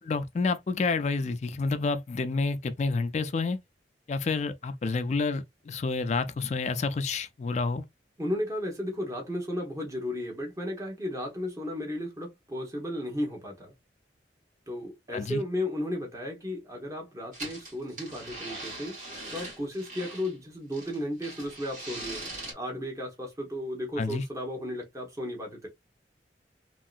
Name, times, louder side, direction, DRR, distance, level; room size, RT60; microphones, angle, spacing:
voice 1, 0.0-3.6 4.1-7.8 15.1-15.4 24.0-24.2, left 4 dB, 40° left, 0.3 m, -29 dB
voice 2, 8.2-13.7 14.7-18.9 19.3-22.3 22.5-25.7, left 1 dB, 20° right, 1.0 m, -34 dB
sound 1, 17.3-20.3 20.7-22.5, right 2 dB, 45° right, 1.5 m, -41 dB
3.0 x 2.7 x 2.4 m
head